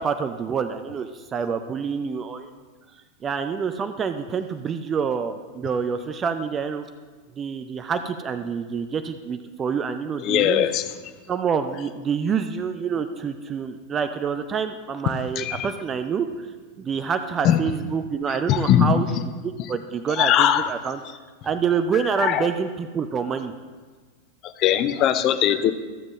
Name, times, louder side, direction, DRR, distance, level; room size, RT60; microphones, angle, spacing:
voice 1, 0.0-2.5 2.9-6.8 7.4-10.7 11.3-16.5 16.8-21.0 21.4-23.5, right 6 dB, 25° right, 9 dB, 0.4 m, -27 dB
voice 2, 10.2-10.8 15.4-15.7 17.4-17.6 18.5-19.0 20.2-20.7 22.2-22.5 24.4-25.7, left 10 dB, 35° left, 11 dB, 0.5 m, -20 dB
14.0 x 7.3 x 3.1 m, 1.4 s
figure-of-eight pair, 90°, 0 cm